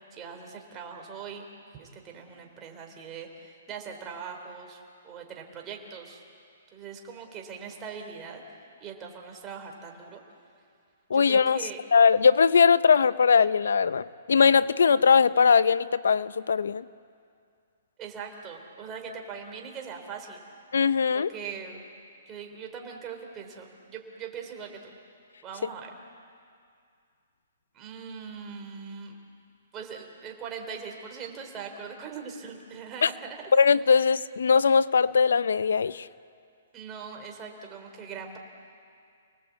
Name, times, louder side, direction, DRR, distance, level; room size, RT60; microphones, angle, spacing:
voice 1, 0.1-1.5 1.8-6.2 6.7-8.4 8.8-10.2 11.1-11.8 18.0-20.4 21.1-21.8 22.3-24.9 25.4-25.9 27.7-29.2 29.7-33.5 36.7-38.4, right 6 dB, 20° right, 2 dB, 3.5 m, -41 dB
voice 2, 11.1-11.6 11.9-16.8 20.7-21.3 33.0-33.1 33.5-36.1, left 6 dB, 85° left, 16 dB, 0.6 m, -20 dB
30.0 x 19.5 x 8.3 m, 2.4 s
hypercardioid pair, 160°, 0 cm